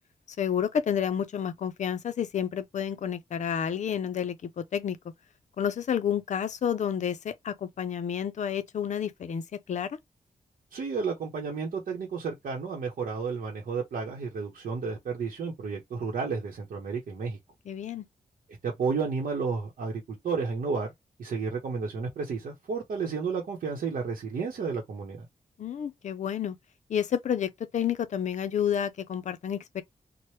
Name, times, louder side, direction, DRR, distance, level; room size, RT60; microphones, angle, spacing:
voice 1, 0.4-5.0 5.6-10.0 17.7-18.1 25.6-26.6 26.9-29.8, left 8 dB, 55° left, 0.5 m, -30 dB
voice 2, 10.7-17.4 18.6-20.9 21.2-25.3, right 5 dB, 70° right, 0.8 m, -32 dB
2.9 x 2.1 x 3.1 m
wide cardioid pair, 175°, 14 cm